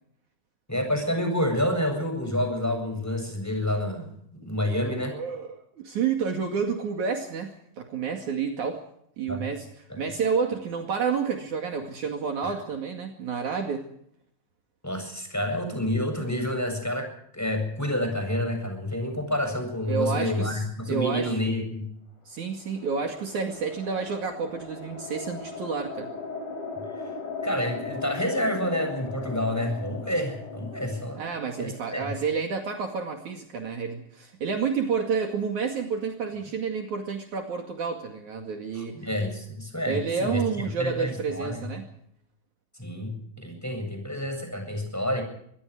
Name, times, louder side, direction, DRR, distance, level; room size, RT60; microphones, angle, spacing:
voice 1, 0.7-4.0 4.4-5.2 9.3-9.4 9.9-10.0 12.4-12.5 14.8-17.1 17.3-21.9 27.4-31.2 31.6-32.1 38.8-40.4 40.8-41.6 42.8-45.2, left 1 dB, 5° left, 5 dB, 7.4 m, -28 dB
voice 2, 5.1-8.8 9.2-13.9 19.9-21.4 22.3-26.1 31.2-39.0 39.9-41.9, right 6 dB, 60° right, 3 dB, 3.5 m, -30 dB
Wind space howling effect, 22.4-32.8, left 4 dB, 80° left, 8.4 m, -38 dB
25.0 x 21.5 x 4.9 m, 0.69 s
omnidirectional pair, 4.1 m